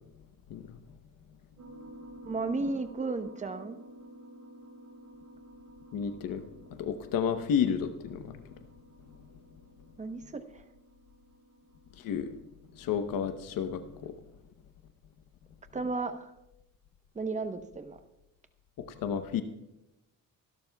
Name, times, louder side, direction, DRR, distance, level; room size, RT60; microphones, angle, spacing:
sound 1, 1.6-14.0, right 1 dB, 55° right, 5.8 m, -52 dB
voice 1, 2.2-3.8 10.0-10.6 15.7-16.3 17.1-18.0, right 3 dB, 20° right, 8 dB, 0.9 m, -34 dB
voice 2, 5.9-6.4 6.7-8.4 12.0-12.3 12.7-14.1 19.0-19.4, left 7 dB, 75° left, 9 dB, 0.9 m, -31 dB
24.0 x 12.0 x 2.3 m, 0.93 s
cardioid pair, 135°, 34 cm